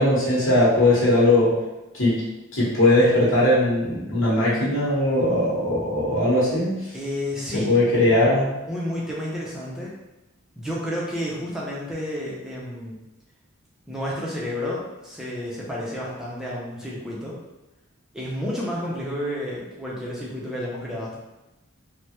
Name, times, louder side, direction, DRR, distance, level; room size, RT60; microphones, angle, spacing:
voice 1, 0.0-1.5 1.9-2.1 2.5-6.7 7.5-8.5, left 1 dB, 65° left, -7 dB, 1.1 m, -19 dB
voice 2, 6.9-7.8 8.7-9.9 10.6-13.0 13.9-17.4 18.1-21.1, left 1 dB, 5° right, -6 dB, 0.5 m, -31 dB
3.3 x 2.1 x 2.9 m, 0.99 s
head